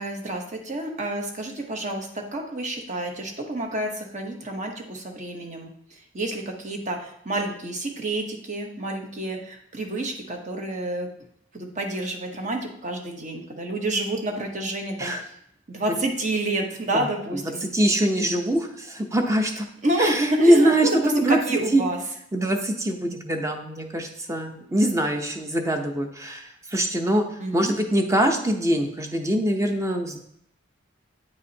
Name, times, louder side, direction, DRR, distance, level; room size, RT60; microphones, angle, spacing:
voice 1, 0.0-5.7 6.1-11.1 11.5-15.1 15.7-17.7 19.8-22.0 27.4-27.8, right 1 dB, 40° right, 3 dB, 1.1 m, -29 dB
voice 2, 16.9-19.7 20.0-21.4 21.7-21.8 22.3-27.3 27.5-30.2, right 1 dB, 15° right, 4 dB, 0.7 m, -23 dB
9.6 x 4.8 x 2.8 m, 0.71 s
head